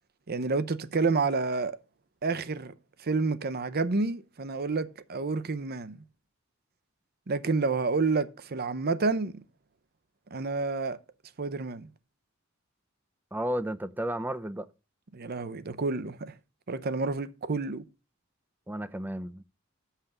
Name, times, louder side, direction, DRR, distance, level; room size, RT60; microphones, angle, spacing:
voice 1, 0.3-1.8 2.2-2.7 3.0-6.0 7.3-9.4 10.3-11.0 11.4-11.9 15.1-16.3 16.7-17.8, right 3 dB, 50° right, 0.7 m, -29 dB
voice 2, 13.3-14.7 18.7-19.4, right 1 dB, 10° right, 0.5 m, -33 dB
7.3 x 5.8 x 6.6 m
head